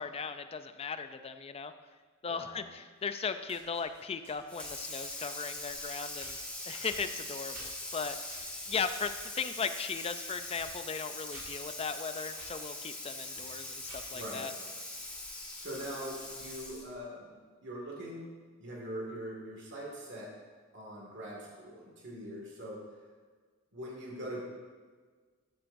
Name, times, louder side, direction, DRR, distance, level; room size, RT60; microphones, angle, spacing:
voice 1, 0.0-1.7 2.2-6.4 6.7-14.5, left 5 dB, 25° left, 9 dB, 0.4 m, -37 dB
voice 2, 2.3-2.6 14.1-14.5 15.6-17.4 17.6-18.3 18.6-20.3 20.7-22.8 23.7-24.4, equal, 55° right, -3 dB, 2.0 m, -42 dB
sound 1, 3.0-3.1 3.4-5.4 6.2-6.5 6.9-9.2 9.6-9.8 10.1-10.2 10.5-10.8 11.3-11.7 12.4-12.6 13.1-13.2 13.7-14.3, right 2 dB, 80° right, 3.1 m, -53 dB
Water tap faucet / Sink (filling or washing), 4.5-17.0, left 2 dB, 5° left, 1.3 m, -42 dB
12.5 x 9.0 x 2.6 m, 1.5 s
head